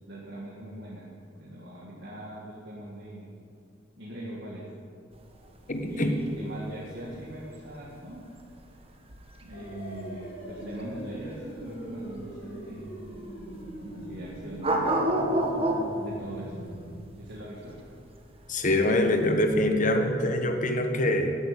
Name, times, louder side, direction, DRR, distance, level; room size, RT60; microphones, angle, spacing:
voice 1, 0.1-1.1 1.4-3.3 4.0-4.7 5.9-8.3 9.4-13.0 13.8-14.9 16.0-16.6 17.2-17.8, right 1 dB, 60° right, -5 dB, 1.9 m, -41 dB
sound 1, 5.1-19.7, right 1 dB, 30° right, 1.4 m, -32 dB
voice 2, 5.7-6.2 18.5-21.4, left 1 dB, 45° left, 5 dB, 1.3 m, -24 dB
sound 2, 9.5-16.9, equal, 80° left, 3.6 m, -41 dB
12.0 x 8.6 x 8.4 m, 2.5 s
head